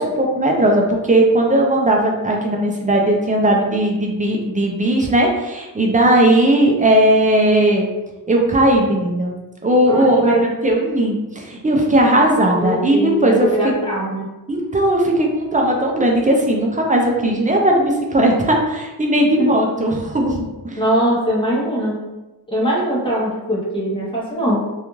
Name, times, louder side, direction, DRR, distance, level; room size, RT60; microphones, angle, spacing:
voice 1, 0.0-7.9 8.3-13.5 14.5-20.8, right 1 dB, 20° right, 0 dB, 0.4 m, -17 dB
voice 2, 9.9-10.5 12.6-14.3 19.4-19.5 20.8-22.0 22.5-24.6, equal, 15° left, -5 dB, 0.8 m, -21 dB
2.4 x 2.3 x 3.0 m, 1.1 s
cardioid pair, 105°, 40 cm